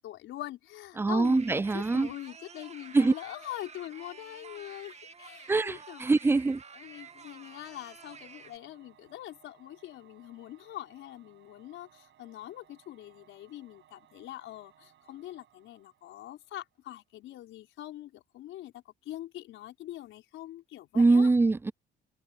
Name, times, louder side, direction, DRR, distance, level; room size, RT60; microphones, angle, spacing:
voice 1, 0.0-6.0 6.8-21.3, left 14 dB, 80° left, 5.4 m, -43 dB
voice 2, 1.0-2.1 2.9-3.1 5.5-6.6 20.9-21.7, right 3 dB, 10° right, 0.3 m, -23 dB
sound 1, 1.2-8.6, right 5 dB, 35° right, 1.9 m, -50 dB
Singing / Musical instrument, 6.8-16.8, right 12 dB, 70° right, 6.5 m, -63 dB
cardioid pair, 90°, 20 cm